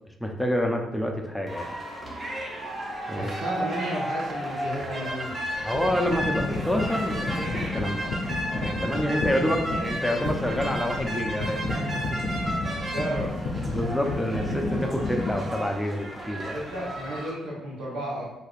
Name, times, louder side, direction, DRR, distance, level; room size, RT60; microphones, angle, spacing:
voice 1, 0.2-1.7 3.1-3.3 5.6-8.1 8.5-12.2 13.7-16.5, equal, 5° left, 2 dB, 0.4 m, -28 dB
sound 1, 1.5-17.3, equal, 35° right, 0.8 m, -34 dB
voice 2, 3.1-5.3 9.3-9.5 12.8-13.3 16.5-18.2, equal, 80° right, -6 dB, 0.9 m, -33 dB
sound 2, 4.8-4.9 5.4-15.4, left 2 dB, 75° left, 0.6 m, -32 dB
3.4 x 2.6 x 2.4 m, 0.95 s
cardioid pair, 90°, 0 cm